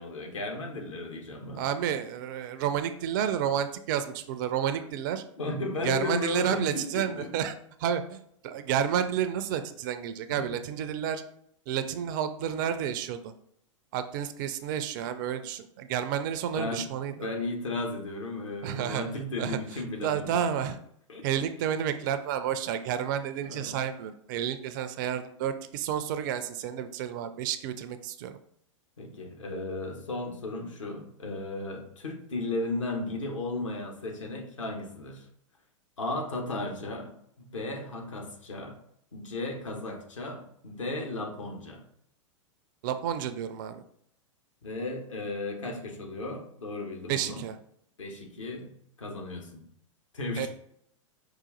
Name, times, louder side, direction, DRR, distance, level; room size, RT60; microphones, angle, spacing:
voice 1, 0.0-1.6 2.5-2.6 5.4-7.4 10.3-10.6 16.6-16.8 17.2-20.4 21.1-21.4 23.4-23.8 29.0-35.3 36.0-38.8 39.1-41.8 44.6-47.4 48.0-49.6 50.1-50.5, left 2 dB, 70° left, 1 dB, 1.1 m, -35 dB
voice 2, 1.5-5.2 5.8-7.5 7.8-11.2 11.7-13.3 13.9-17.1 18.6-19.6 20.0-20.8 21.2-28.3 42.8-43.8 47.1-47.6 50.4-50.5, right 9 dB, 40° right, 10 dB, 0.4 m, -30 dB
4.9 x 2.4 x 3.8 m, 0.69 s
figure-of-eight pair, 100°, 17 cm